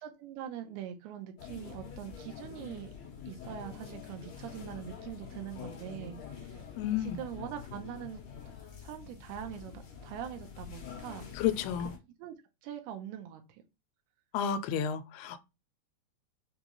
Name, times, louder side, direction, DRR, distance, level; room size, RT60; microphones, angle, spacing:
voice 1, 0.0-2.9 3.3-6.6 7.0-8.2 8.8-11.3 12.2-12.4 12.6-13.6, right 10 dB, 85° right, 2.7 m, -43 dB
sound 1, 1.4-12.0, left 7 dB, 55° left, 2.1 m, -46 dB
voice 2, 6.8-7.2 11.4-11.9 14.3-15.4, left 8 dB, 85° left, 2.5 m, -31 dB
6.6 x 2.4 x 2.9 m
omnidirectional pair, 4.5 m